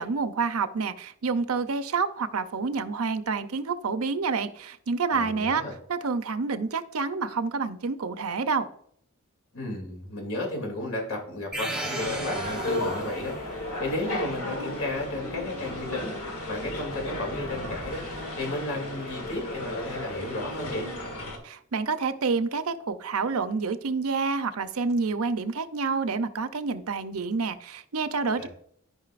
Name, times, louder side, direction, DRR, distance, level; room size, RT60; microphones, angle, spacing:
voice 1, 0.0-5.6 5.9-8.7 21.4-28.5, right 4 dB, 80° right, 11 dB, 0.6 m, -28 dB
voice 2, 5.1-5.7 9.5-20.9 28.4-28.5, left 1 dB, 70° left, 0 dB, 2.7 m, -33 dB
sound 1, 11.5-13.4, right 1 dB, 5° right, 0.9 m, -35 dB
sound 2, 12.0-21.4, left 1 dB, 90° left, 1.8 m, -34 dB
12.5 x 5.4 x 2.5 m, 0.64 s
head